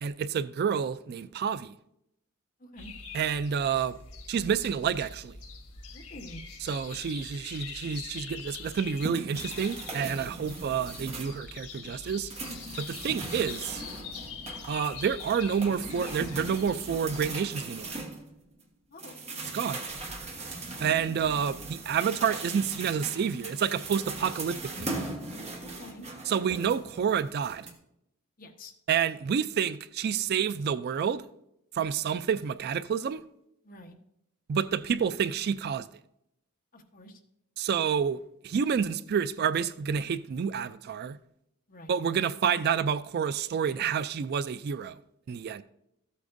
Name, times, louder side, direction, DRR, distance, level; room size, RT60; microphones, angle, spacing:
voice 1, 0.0-1.7 3.1-4.0 4.3-5.4 6.6-12.3 12.8-13.8 14.7-18.0 19.5-19.8 20.8-24.9 26.3-27.7 28.9-31.3 31.7-33.2 34.5-35.9 37.6-38.2 38.4-41.2 41.9-45.0 45.3-45.6, right 7 dB, 45° right, 0.3 m, -29 dB
voice 2, 2.6-2.9 5.9-6.4 10.3-10.5 18.9-19.2 25.6-26.1 28.4-28.7 33.6-34.0 36.7-37.2 41.7-41.9, left 1 dB, 40° left, 1.1 m, -47 dB
sound 1, 2.8-9.0 9.4-17.5, left 5 dB, 85° left, 1.3 m, -44 dB
sound 2, 8.5-11.4 11.8-18.6 19.0-27.7, right 2 dB, 30° right, 1.3 m, -39 dB
13.5 x 8.4 x 2.6 m
head